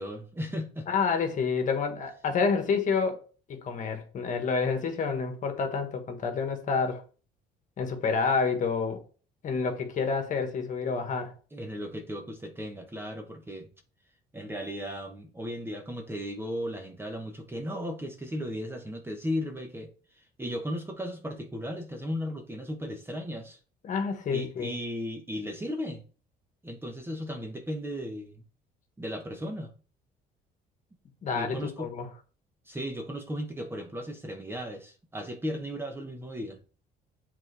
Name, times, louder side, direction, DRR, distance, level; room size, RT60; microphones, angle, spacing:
voice 1, 0.0-0.9 11.5-13.7 14.3-19.9 20.4-23.6 24.3-26.0 26.6-28.4 29.0-29.7 31.3-31.9 32.7-36.6, equal, 15° right, 1.0 m, -36 dB
voice 2, 0.9-3.2 3.5-7.0 7.8-9.0 9.4-11.3 23.8-24.7 31.2-32.1, left 5 dB, 50° left, 1.5 m, -28 dB
7.5 x 3.9 x 3.4 m
cardioid pair, 110°, 17 cm